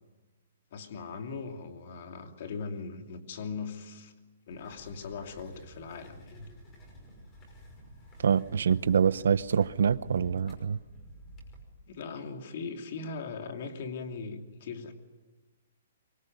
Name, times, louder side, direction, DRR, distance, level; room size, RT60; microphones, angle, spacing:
voice 1, 0.7-4.1 4.5-6.5 11.9-14.9, left 4 dB, 45° left, 2.8 m, -39 dB
sound 1, 4.5-11.6, equal, 15° left, 5.5 m, -50 dB
voice 2, 8.2-10.8, right 7 dB, 75° right, 1.0 m, -25 dB
24.5 x 23.5 x 9.4 m
hypercardioid pair, 175°, 0 cm